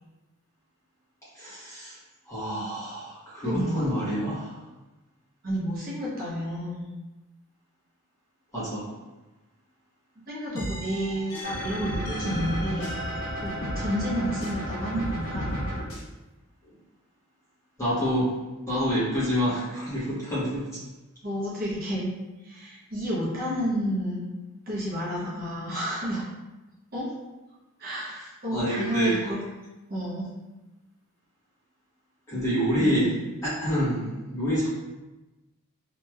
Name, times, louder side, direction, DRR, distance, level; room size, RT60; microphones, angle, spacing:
voice 1, 1.3-2.0 2.3-4.6 8.5-8.9 17.8-18.4 18.7-20.7 28.5-29.2 32.3-33.1 33.4-34.7, equal, 15° left, -11 dB, 1.2 m, -27 dB
voice 2, 3.4-3.9 5.4-6.9 10.3-12.9 13.4-15.5 21.2-22.1 22.4-24.2 24.7-26.2 26.9-27.1 27.8-29.4 29.9-30.3 32.8-33.1, equal, 45° right, -8 dB, 0.8 m, -30 dB
sound 1, 10.5-14.6 14.9-16.0, equal, 75° left, 0.7 m, -35 dB
sound 2, 11.4-15.8, equal, 55° left, 1.1 m, -34 dB
2.9 x 2.9 x 2.3 m, 1.1 s
head